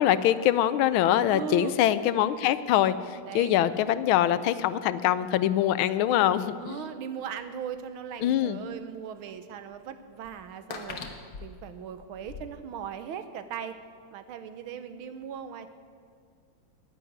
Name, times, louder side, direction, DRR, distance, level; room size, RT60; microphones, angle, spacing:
voice 1, 0.0-3.0 3.3-6.9 8.2-8.6, left 11 dB, 85° left, 15 dB, 1.5 m, -24 dB
voice 2, 1.3-1.7 3.3-3.5 6.6-11.0 11.4-13.8 14.1-15.7, right 8 dB, 90° right, 10 dB, 1.7 m, -38 dB
sound 1, 8.6-8.7 9.7-9.8 10.2-12.5, left 5 dB, 55° left, 1.6 m, -41 dB
11.0 x 10.0 x 9.3 m, 2.1 s
omnidirectional pair, 2.2 m